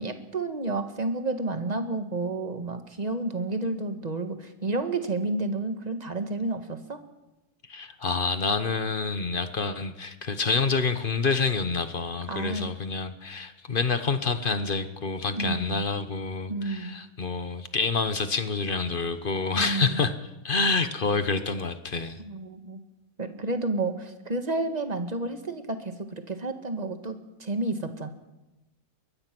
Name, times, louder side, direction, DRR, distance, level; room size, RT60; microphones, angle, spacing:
voice 1, 0.0-7.0 12.3-12.7 15.3-15.8 16.5-16.9 19.5-20.0 22.2-22.8 23.2-28.1, right 2 dB, 25° right, 7 dB, 1.7 m, -31 dB
voice 2, 7.7-20.1 20.4-22.2, left 4 dB, 35° left, 10 dB, 1.1 m, -27 dB
23.5 x 21.0 x 6.1 m, 1.0 s
omnidirectional pair, 1.8 m